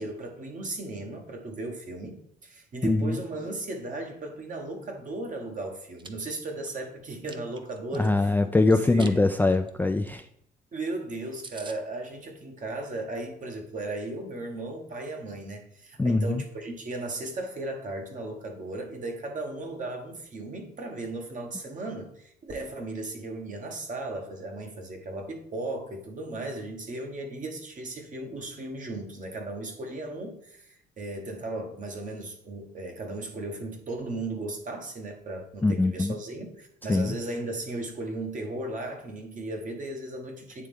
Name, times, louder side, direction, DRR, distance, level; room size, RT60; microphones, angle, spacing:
voice 1, 0.0-8.5 8.9-9.2 10.7-40.7, right 2 dB, 45° right, 3 dB, 1.4 m, -36 dB
voice 2, 2.8-3.2 7.9-10.3 16.0-16.4 35.6-36.2 36.9-37.2, left 2 dB, 10° left, 7 dB, 0.4 m, -23 dB
Chewing mastication, 5.7-6.1 6.6-8.1 8.7-9.2 9.5-9.7 10.1-10.2 10.4-10.5 10.9-11.0 11.1-11.2 11.4-11.8, right 4 dB, 25° right, 0.6 m, -44 dB
9.2 x 3.3 x 3.6 m, 0.71 s
supercardioid pair, 75°, 18 cm